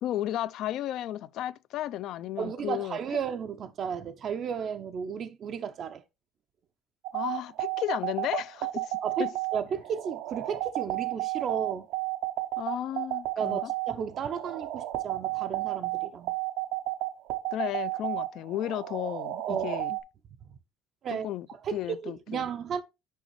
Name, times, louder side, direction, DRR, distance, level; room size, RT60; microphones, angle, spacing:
voice 1, 0.0-3.0 7.1-9.3 12.6-13.7 17.5-20.0 21.1-21.5 21.7-22.5, left 13 dB, 55° left, 0.3 m, -34 dB
voice 2, 2.4-6.0 9.0-11.9 13.4-16.3 19.5-19.7 21.0-21.3 21.6-21.8 22.0-22.8, right 7 dB, 40° right, 0.5 m, -34 dB
sound 1, 7.0-20.0, right 18 dB, 80° right, 0.7 m, -32 dB
6.3 x 5.1 x 3.1 m
cardioid pair, 145°, 0 cm